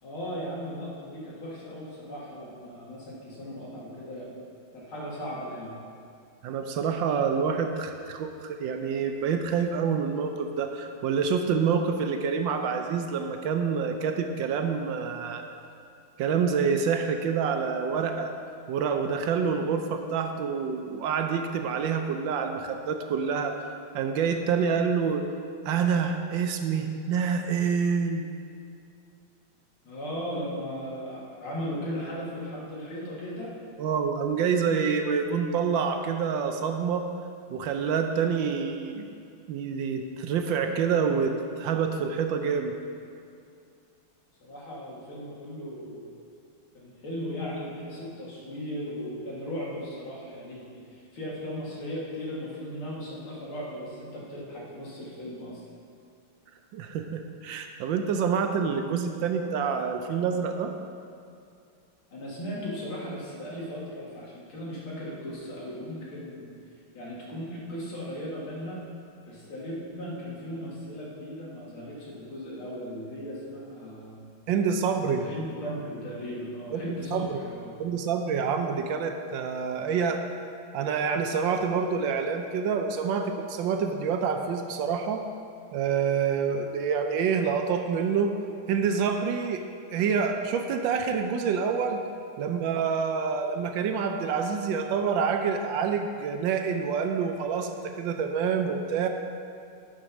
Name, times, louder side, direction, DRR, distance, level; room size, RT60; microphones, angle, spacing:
voice 1, 0.0-4.3 4.7-5.8 29.8-33.5 44.4-46.1 46.7-55.6 62.1-66.4 66.9-68.8 69.3-74.2 75.0-77.7, equal, 80° left, -6 dB, 2.8 m, -37 dB
voice 2, 6.4-15.4 16.2-18.3 18.7-23.6 23.9-25.3 25.7-28.3 33.8-37.1 37.5-39.2 39.5-42.7 56.7-60.7 74.5-75.3 76.7-77.4 77.8-80.3 80.7-85.3 85.7-88.3 88.7-89.6 89.9-92.0 92.4-99.1, right 6 dB, 75° right, 5 dB, 1.3 m, -27 dB
9.9 x 5.3 x 6.0 m, 2.4 s
omnidirectional pair, 2.2 m